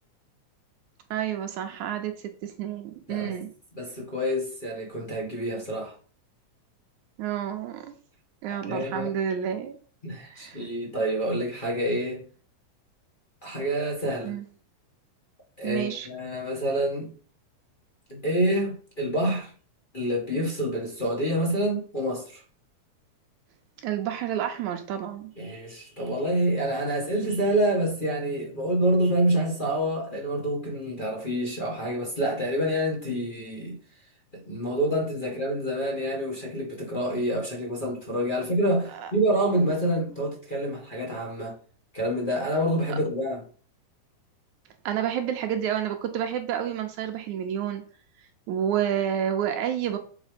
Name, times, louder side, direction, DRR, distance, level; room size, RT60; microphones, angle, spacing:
voice 1, 1.1-3.5 7.2-7.9 8.4-9.8 10.3-10.7 14.2-14.4 15.6-16.1 23.8-25.3 38.9-39.1 44.9-47.8 48.5-50.0, right 9 dB, 75° right, 2.1 m, -29 dB
voice 2, 3.7-5.9 8.7-9.1 10.0-12.2 13.4-14.3 15.6-17.1 18.1-19.5 19.9-22.4 25.4-33.8 34.3-41.5 41.9-43.4, right 1 dB, 25° left, 1.3 m, -27 dB
7.3 x 4.7 x 5.1 m
omnidirectional pair, 3.6 m